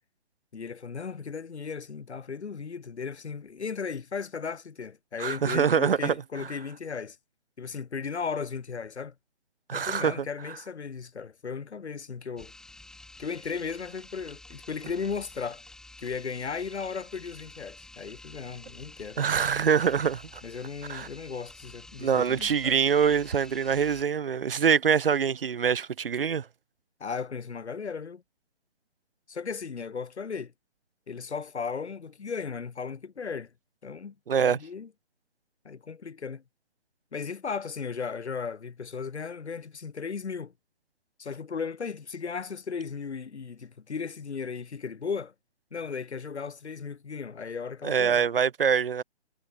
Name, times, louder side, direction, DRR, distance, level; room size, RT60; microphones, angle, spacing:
voice 1, 0.5-7.2 7.6-9.1 9.7-12.5 13.2-15.6 16.0-19.2 20.4-22.8 27.0-28.2 29.3-30.5 31.1-33.5 33.8-34.9 35.6-36.4 37.1-40.5 41.2-45.3 45.7-48.2, left 5 dB, 75° left, 2.9 m, -36 dB
voice 2, 5.2-6.1 9.7-10.3 19.2-20.4 20.9-21.1 22.0-26.5 34.3-34.6 47.8-49.0, right 7 dB, 55° right, 1.1 m, -24 dB
sound 1, 12.4-24.0, left 2 dB, ahead, 8.0 m, -50 dB
hypercardioid pair, 170°, 34 cm